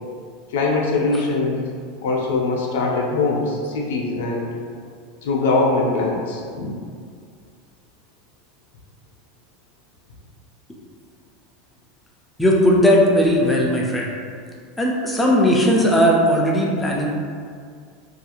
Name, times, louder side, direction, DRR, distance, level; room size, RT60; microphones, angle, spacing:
voice 1, 0.5-1.7 2.0-4.5 5.2-6.7, left 3 dB, 90° left, -2 dB, 0.5 m, -22 dB
voice 2, 12.4-14.1 14.8-17.1, equal, 5° left, -3 dB, 0.3 m, -17 dB
2.4 x 2.3 x 2.9 m, 2.2 s
supercardioid pair, 165°, 0 cm